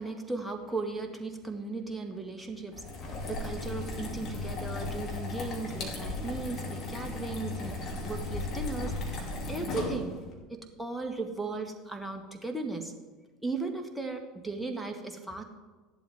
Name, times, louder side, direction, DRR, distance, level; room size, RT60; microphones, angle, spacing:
voice 1, 0.0-10.2 10.5-12.9 13.4-15.4, right 3 dB, 5° right, 4 dB, 1.8 m, -37 dB
sound 1, 2.7-10.3, left 2 dB, 40° left, 2.8 m, -36 dB
14.5 x 11.0 x 3.6 m, 1.3 s
figure-of-eight pair, 70°, 0 cm